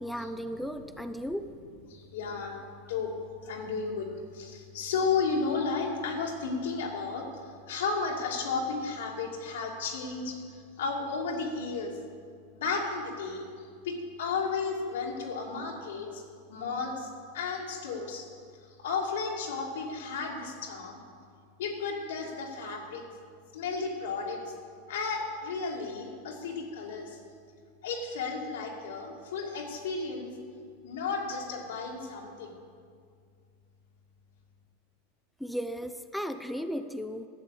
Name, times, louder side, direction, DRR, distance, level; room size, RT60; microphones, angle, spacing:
voice 1, 0.0-1.5 35.4-37.3, equal, ahead, 8 dB, 0.5 m, -35 dB
voice 2, 0.7-1.3 1.9-2.6 2.9-3.1 3.4-11.9 12.5-16.2 16.5-17.1 17.3-18.2 18.8-21.0 21.6-23.0 23.5-24.5 24.9-27.2 27.8-30.3 30.8-32.6, left 4 dB, 85° left, -1 dB, 2.5 m, -33 dB
12.0 x 7.4 x 8.4 m, 2.2 s
supercardioid pair, 135°, 0 cm